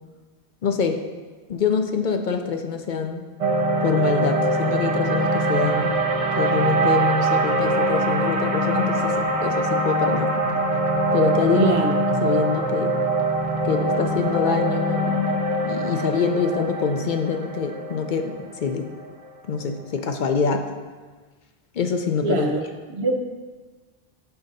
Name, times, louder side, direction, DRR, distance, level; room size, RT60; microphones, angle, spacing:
voice 1, 0.6-1.0 1.5-3.2 3.8-5.9 6.3-10.3 11.1-11.8 12.1-12.9 13.6-15.3 15.6-18.9 19.5-20.7 21.7-22.5, left 5 dB, 55° left, 5 dB, 0.7 m, -25 dB
sound 1, 3.4-19.7, right 2 dB, 40° right, 0.6 m, -23 dB
voice 2, 11.6-11.9 22.2-22.6 22.9-23.2, right 3 dB, 80° right, 3 dB, 1.1 m, -22 dB
8.0 x 3.8 x 5.3 m, 1.4 s
omnidirectional pair, 1.1 m